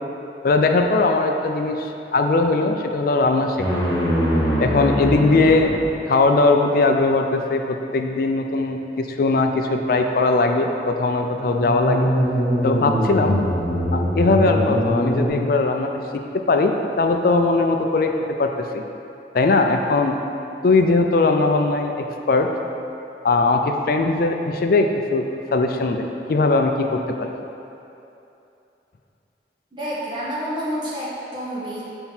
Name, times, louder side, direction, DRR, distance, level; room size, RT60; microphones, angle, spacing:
voice 1, 0.4-3.8 4.6-5.7 6.1-12.1 12.6-13.4 13.9-15.9 16.5-18.1 18.4-18.8 19.3-20.2 20.6-22.5 23.2-27.3, left 3 dB, 50° left, 4 dB, 0.4 m, -20 dB
sound 1, 3.6-5.9 11.3-15.3, equal, 20° left, 1.0 m, -22 dB
voice 2, 29.7-31.8, equal, 25° right, -7 dB, 1.2 m, -29 dB
5.7 x 4.5 x 4.3 m, 2.8 s
head